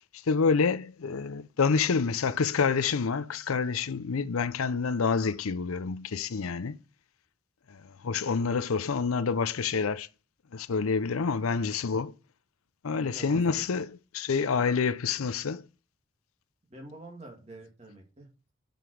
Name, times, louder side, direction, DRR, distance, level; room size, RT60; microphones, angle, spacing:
voice 1, 0.3-6.8 7.7-10.1 10.5-12.1 12.8-15.7, left 5 dB, 85° left, 0.6 m, -28 dB
voice 2, 13.0-13.6 16.7-18.5, right 2 dB, 30° right, 2.3 m, -47 dB
7.7 x 5.2 x 6.3 m
head